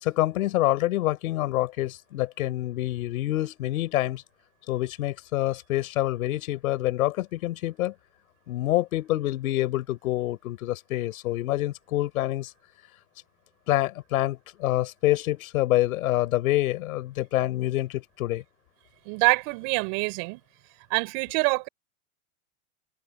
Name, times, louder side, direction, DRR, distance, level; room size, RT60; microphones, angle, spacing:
voice 1, 0.0-4.2 4.7-7.9 8.5-12.5 13.7-18.4, left 16 dB, 80° left, 4.1 m, -26 dB
voice 2, 19.1-20.4 20.9-21.7, right 32 dB, 55° right, 5.9 m, -25 dB
supercardioid pair, 130°, 42 cm